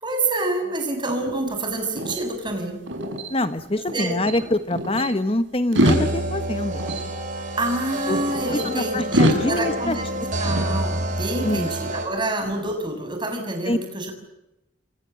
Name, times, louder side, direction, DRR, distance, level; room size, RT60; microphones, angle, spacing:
voice 1, 0.0-2.8 3.9-4.2 7.6-10.1 10.4-14.1, right 2 dB, 25° right, 5 dB, 6.4 m, -27 dB
sound 1, 1.1-4.0 4.2-5.1 5.6-8.7 9.1-11.4, equal, 80° right, 6.3 m, -27 dB
voice 2, 3.3-6.8 8.1-8.2 8.5-9.9 11.4-11.7 13.7-13.8, left 1 dB, 30° left, 11 dB, 1.3 m, -25 dB
sound 2, 5.8-12.1, right 1 dB, 40° right, 6.1 m, -28 dB
28.0 x 24.5 x 7.9 m, 0.92 s
head